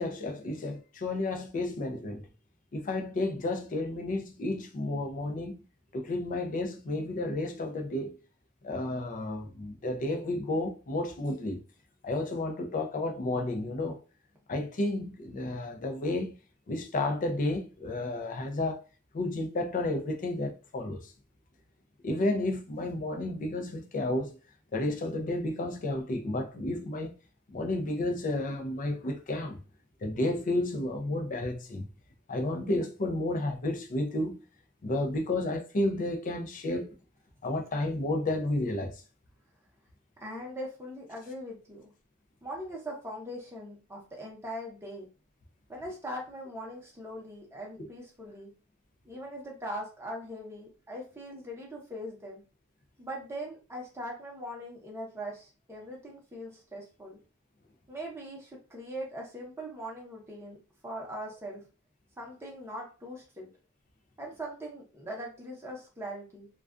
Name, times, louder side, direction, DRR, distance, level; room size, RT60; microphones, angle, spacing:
voice 1, 0.0-2.2 2.7-5.6 5.9-8.1 8.6-11.6 12.0-14.0 14.5-16.3 16.7-18.8 19.1-21.1 22.0-24.3 24.7-27.1 27.5-29.6 30.0-31.8 32.3-34.4 34.8-36.9 37.4-38.9 47.8-47.9, left 2 dB, 40° left, 0.4 m, -31 dB
voice 2, 40.2-41.9 42.4-45.1 45.7-48.5 49.0-52.4 53.0-57.2 57.9-60.6 60.8-61.6 62.2-63.5 64.2-66.5, equal, 10° right, 0.8 m, -41 dB
2.3 x 2.2 x 2.4 m
head